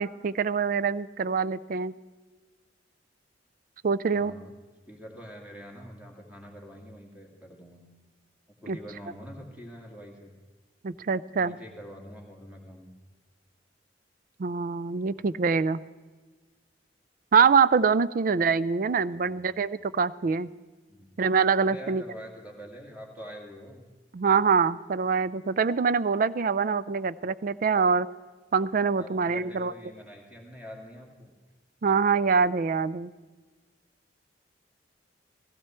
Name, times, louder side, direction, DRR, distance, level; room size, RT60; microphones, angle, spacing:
voice 1, 0.0-1.9 3.8-4.3 8.7-8.8 10.8-11.6 14.4-15.8 17.3-20.5 21.2-22.0 24.1-28.1 28.5-29.7 31.8-33.1, right 5 dB, 45° right, 18 dB, 0.4 m, -24 dB
voice 2, 4.1-4.5 4.9-7.8 8.6-10.3 11.4-12.9 19.1-19.5 20.9-21.2 21.6-23.8 29.0-31.3, equal, 10° right, 0 dB, 2.2 m, -45 dB
15.5 x 15.5 x 4.4 m, 1.3 s
head